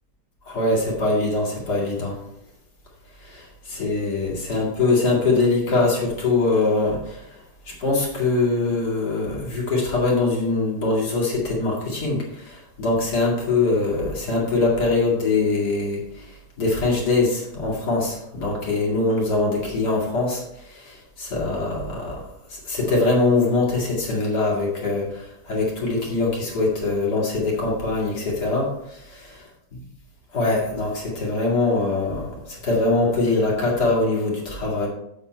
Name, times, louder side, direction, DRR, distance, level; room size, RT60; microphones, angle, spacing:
voice 1, 0.4-2.2 3.2-29.1 30.3-34.9, left 3 dB, 65° left, -4 dB, 2.8 m, -23 dB
7.4 x 7.2 x 4.5 m, 0.82 s
omnidirectional pair, 1.9 m